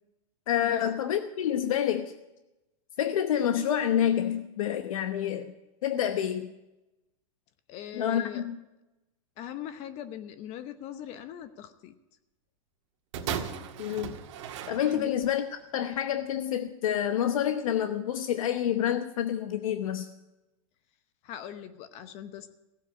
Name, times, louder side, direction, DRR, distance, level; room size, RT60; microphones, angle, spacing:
voice 1, 0.5-2.1 3.0-5.5 5.8-6.5 7.9-8.6 13.8-14.1 14.7-15.4 15.7-20.1, left 10 dB, 75° left, 8 dB, 1.0 m, -28 dB
voice 2, 7.7-8.4 9.4-11.9 14.9-15.1 21.2-22.5, left 10 dB, 40° left, 11 dB, 0.9 m, -41 dB
sound 1, 13.1-15.4 16.2-16.3, right 8 dB, 60° right, 1.8 m, -36 dB
16.0 x 7.6 x 8.4 m, 0.97 s
hypercardioid pair, 140°, 18 cm